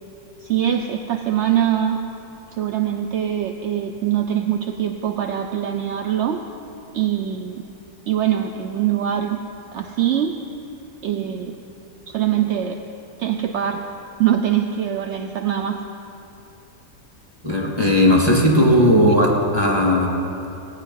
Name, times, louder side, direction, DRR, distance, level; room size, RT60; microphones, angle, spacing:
voice 1, 0.4-2.0 2.6-6.4 6.9-7.6 8.1-9.4 9.7-10.3 11.0-11.6 12.1-12.8 13.2-13.8 14.2-15.8 18.6-19.2, right 10 dB, 65° right, 5 dB, 0.7 m, -23 dB
voice 2, 17.4-19.3 19.5-20.1, left 1 dB, 15° right, -1 dB, 1.9 m, -16 dB
17.5 x 9.2 x 5.5 m, 2.8 s
omnidirectional pair, 1.7 m